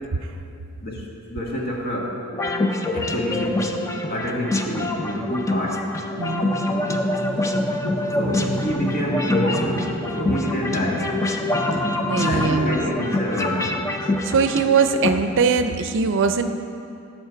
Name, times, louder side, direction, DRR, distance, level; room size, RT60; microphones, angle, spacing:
voice 1, 0.8-2.2 2.9-3.7 4.1-5.8 8.1-11.2 12.2-13.8, equal, 45° left, -1 dB, 1.3 m, -27 dB
sound 1, 2.3-15.1, left 2 dB, 15° left, 0.5 m, -26 dB
sound 2, 6.2-13.7, equal, 70° left, 1.9 m, -30 dB
voice 2, 6.2-6.6 11.7-12.8 14.2-16.5, right 5 dB, 60° right, 9 dB, 0.5 m, -21 dB
10.5 x 6.3 x 4.5 m, 2.6 s
head